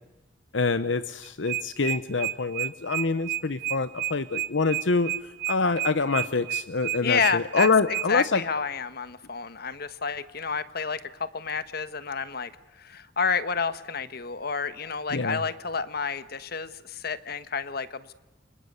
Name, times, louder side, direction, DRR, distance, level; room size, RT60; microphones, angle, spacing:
voice 1, 0.5-5.1 5.5-8.4 15.1-15.4, left 4 dB, 75° left, 13 dB, 0.9 m, -26 dB
sound 1, 1.2-8.1, right 14 dB, 50° right, 1.0 m, -30 dB
voice 2, 7.0-12.5 12.8-18.1, left 5 dB, 55° left, 13 dB, 1.3 m, -30 dB
29.0 x 25.5 x 8.1 m, 1.0 s
head